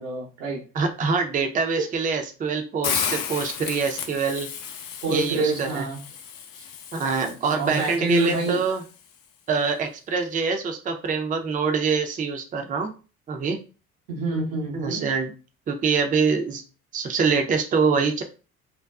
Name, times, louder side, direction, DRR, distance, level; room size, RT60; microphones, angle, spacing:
voice 1, 0.0-0.6 5.0-6.0 7.2-8.6 14.1-15.0, right 2 dB, 80° right, -1 dB, 0.9 m, -27 dB
voice 2, 0.7-4.5 5.1-5.8 6.9-8.8 9.5-12.9 13.3-13.6 14.7-15.3 15.7-16.6 16.9-18.2, right 5 dB, 20° right, 5 dB, 0.4 m, -24 dB
Hiss, 2.8-8.9, left 7 dB, 50° left, 0.5 m, -33 dB
2.4 x 2.2 x 2.3 m, 0.34 s
hypercardioid pair, 55°, 42 cm